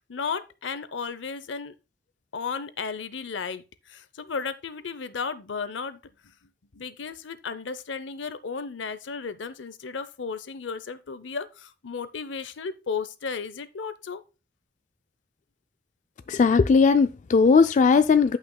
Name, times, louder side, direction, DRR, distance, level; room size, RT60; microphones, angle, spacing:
voice 1, 0.1-1.7 2.3-6.0 6.7-14.2, left 5 dB, 75° left, 0.7 m, -34 dB
voice 2, 16.3-18.4, left 5 dB, 40° left, 0.3 m, -18 dB
15.0 x 5.7 x 2.2 m
head